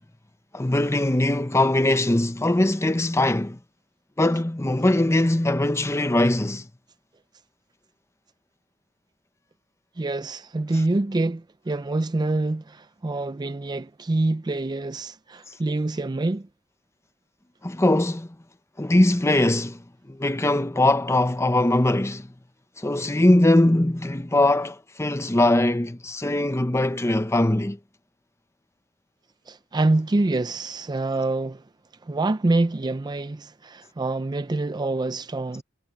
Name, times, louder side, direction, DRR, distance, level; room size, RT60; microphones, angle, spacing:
voice 1, 0.5-3.6 4.2-6.6 17.6-18.3 18.8-19.8 20.1-22.3 22.8-27.8, left 1 dB, 15° left, 0.8 m, -21 dB
voice 2, 10.0-16.5 29.5-31.6 32.0-35.6, right 2 dB, 20° right, 0.4 m, -26 dB
head